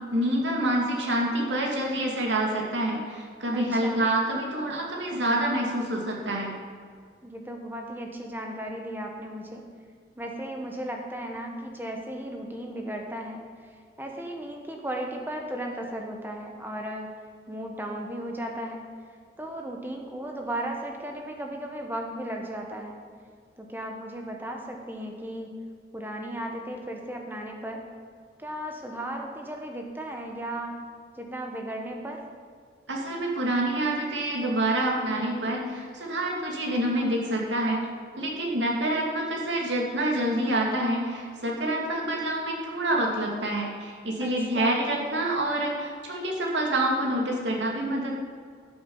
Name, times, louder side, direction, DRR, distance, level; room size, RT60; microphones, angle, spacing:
voice 1, 0.1-6.5 32.9-37.9 38.2-48.1, right 1 dB, 90° right, -1 dB, 2.4 m, -27 dB
voice 2, 3.5-4.0 7.2-9.7 10.2-13.4 14.0-17.1 17.5-18.8 19.4-23.0 23.6-25.5 25.9-27.8 28.4-30.8 31.1-32.2 44.2-45.0, right 1 dB, 10° right, 1 dB, 1.2 m, -35 dB
13.0 x 7.2 x 5.5 m, 2.1 s
head